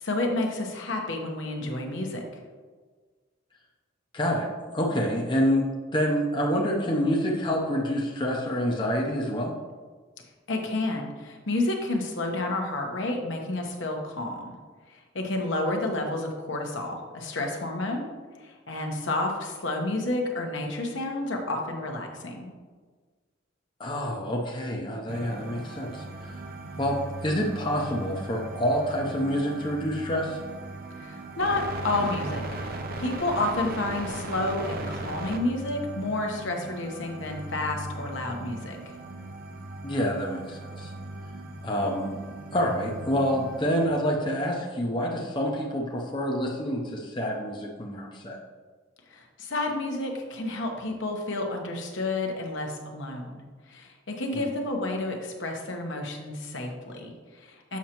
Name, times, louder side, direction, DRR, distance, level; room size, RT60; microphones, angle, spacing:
voice 1, 0.0-2.2 10.5-14.5 14.9-18.0 18.4-22.5 31.0-38.8 49.1-53.4 53.7-57.8, left 2 dB, 65° left, 2 dB, 1.0 m, -30 dB
voice 2, 4.1-4.5 4.7-5.6 5.9-9.5 23.8-26.3 26.8-27.0 27.2-30.4 39.8-40.9 41.6-42.1 42.5-48.4 54.3-54.5, equal, 25° left, -1 dB, 0.6 m, -27 dB
sound 1, 25.1-43.9, right 2 dB, 50° right, 0.6 m, -38 dB
7.2 x 6.3 x 3.0 m, 1.5 s
head